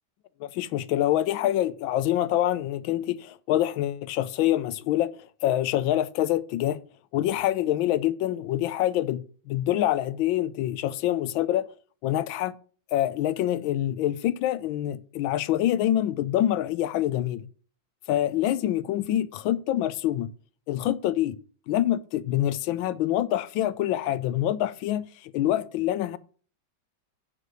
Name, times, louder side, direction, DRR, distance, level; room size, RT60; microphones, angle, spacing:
voice 1, 0.4-5.1 5.4-6.8 7.1-11.7 12.0-12.5 12.9-17.5 18.1-20.3 20.7-21.4 21.7-26.2, left 13 dB, 85° left, 1.4 m, -26 dB
9.4 x 4.9 x 6.2 m
omnidirectional pair, 2.1 m